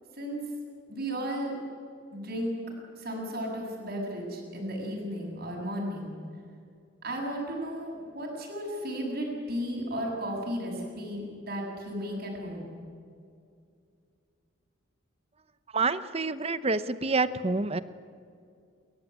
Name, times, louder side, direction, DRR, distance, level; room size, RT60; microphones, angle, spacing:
voice 1, 0.1-0.5 0.9-1.5 2.1-2.5 3.0-6.2 7.0-12.7, equal, 50° right, -1 dB, 7.5 m, -34 dB
voice 2, 15.7-17.8, right 3 dB, 30° right, 13 dB, 0.8 m, -27 dB
29.0 x 14.5 x 9.8 m, 2.4 s
head